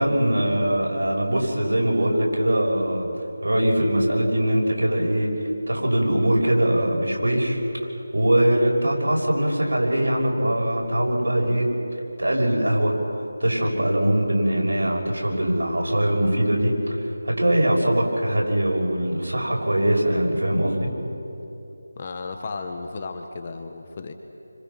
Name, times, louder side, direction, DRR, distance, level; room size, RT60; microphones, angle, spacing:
voice 1, 0.0-3.1 3.4-5.3 5.7-7.6 8.1-11.7 12.2-13.0 13.4-20.9, right 1 dB, 85° right, -1 dB, 6.5 m, -22 dB
voice 2, 21.9-24.1, left 4 dB, 35° left, 5 dB, 1.3 m, -34 dB
29.0 x 25.5 x 5.9 m, 3.0 s
figure-of-eight pair, 170°, 0 cm